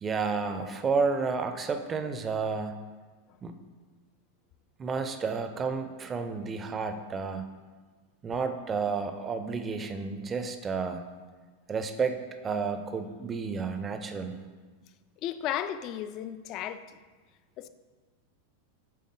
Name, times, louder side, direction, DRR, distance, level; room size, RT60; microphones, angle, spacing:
voice 1, 0.0-2.8 3.4-3.6 4.8-7.4 8.2-11.1 11.7-14.4, right 5 dB, 20° right, 7 dB, 0.5 m, -31 dB
voice 2, 15.2-17.0 17.6-17.7, left 11 dB, 40° left, 12 dB, 0.3 m, -34 dB
7.6 x 3.6 x 3.7 m, 1.4 s
figure-of-eight pair, 90°, 0 cm